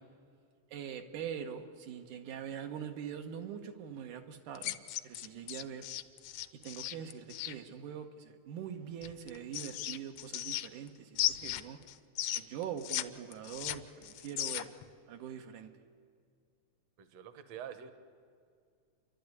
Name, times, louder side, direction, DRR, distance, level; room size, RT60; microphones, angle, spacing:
voice 1, 0.7-4.8 5.0-5.9 6.6-11.8 12.4-14.7 15.1-15.7, right 8 dB, 85° right, 5 dB, 2.7 m, -43 dB
sound 1, 4.6-7.6 9.0-10.9 11.2-13.0 13.3-14.8, left 13 dB, 75° left, 1.8 m, -36 dB
voice 2, 17.0-17.9, right 9 dB, 65° right, 11 dB, 2.1 m, -46 dB
29.0 x 12.0 x 9.7 m, 2.3 s
omnidirectional pair, 3.5 m